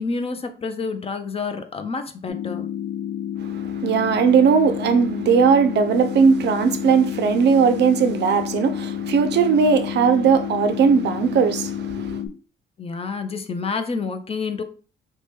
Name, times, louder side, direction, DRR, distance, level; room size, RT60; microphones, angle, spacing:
voice 1, 0.0-2.7 12.8-14.6, left 4 dB, 30° left, 0.4 m, -28 dB
sound 1, 2.3-12.3, left 10 dB, 75° left, 0.6 m, -30 dB
voice 2, 3.4-12.2, right 6 dB, 60° right, 0.4 m, -18 dB
2.8 x 2.2 x 3.2 m
cardioid pair, 90°, 20 cm